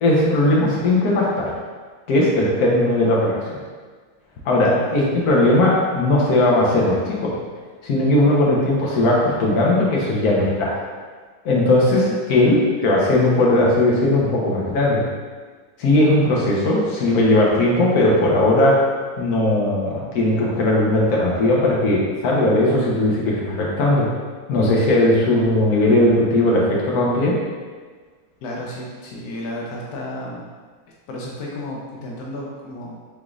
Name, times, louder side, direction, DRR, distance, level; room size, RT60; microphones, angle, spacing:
voice 1, 0.0-1.5 2.1-3.4 4.4-7.3 7.8-10.7 11.4-12.6 12.8-15.0 15.8-18.8 19.2-24.1 24.5-27.4, left 1 dB, 55° left, -4 dB, 1.1 m, -18 dB
voice 2, 12.0-12.5 28.4-30.5 31.1-33.0, left 1 dB, 80° left, -3 dB, 0.8 m, -32 dB
5.0 x 3.6 x 2.4 m, 1.5 s
omnidirectional pair, 2.4 m